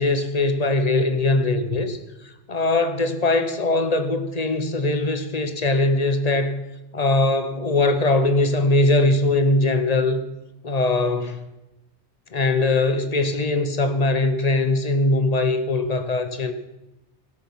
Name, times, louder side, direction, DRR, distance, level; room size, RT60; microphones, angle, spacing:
voice 1, 0.0-2.0 2.2-6.6 6.9-10.2 10.6-11.5 12.3-16.5, left 2 dB, 40° left, 0.9 m, -21 dB
17.0 x 6.7 x 5.5 m
omnidirectional pair, 1.2 m